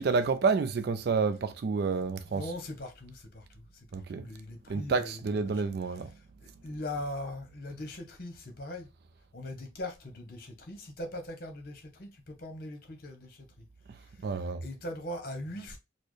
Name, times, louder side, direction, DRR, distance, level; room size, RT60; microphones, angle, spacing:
voice 1, 0.0-2.4 3.9-4.3 4.7-6.1 14.2-14.6, right 4 dB, 55° right, 0.3 m, -29 dB
voice 2, 2.0-8.9 9.3-13.6 14.0-15.8, left 1 dB, 50° left, 0.9 m, -41 dB
4.2 x 2.1 x 3.1 m
head